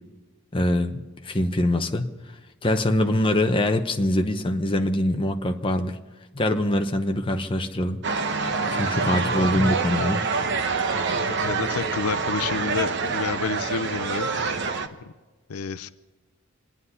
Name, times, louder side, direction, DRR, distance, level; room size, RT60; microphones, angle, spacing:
voice 1, 0.5-2.1 2.6-6.0 6.3-8.0 8.7-10.2, left 1 dB, 25° left, 5 dB, 0.8 m, -23 dB
sound 1, 8.0-14.9, right 4 dB, 55° right, 0.9 m, -26 dB
voice 2, 9.0-9.5 10.7-14.3 15.0-15.1 15.5-15.9, left 5 dB, 85° left, 14 dB, 0.6 m, -30 dB
26.5 x 9.7 x 5.6 m, 1.2 s
head